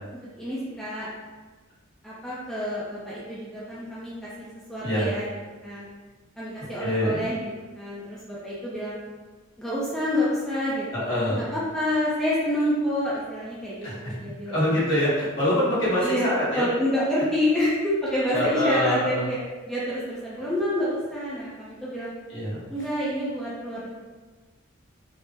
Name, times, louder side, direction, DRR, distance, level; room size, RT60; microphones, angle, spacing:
voice 1, 0.4-1.1 2.0-5.3 5.6-5.9 6.4-7.5 7.7-9.0 9.6-14.8 16.0-22.1 22.7-23.9, left 1 dB, ahead, -9 dB, 0.4 m, -28 dB
voice 2, 6.8-7.2 10.9-11.4 13.8-14.1 14.5-16.6 18.3-19.2 22.3-22.6, equal, 60° left, -8 dB, 1.1 m, -25 dB
3.4 x 2.0 x 2.7 m, 1.3 s
head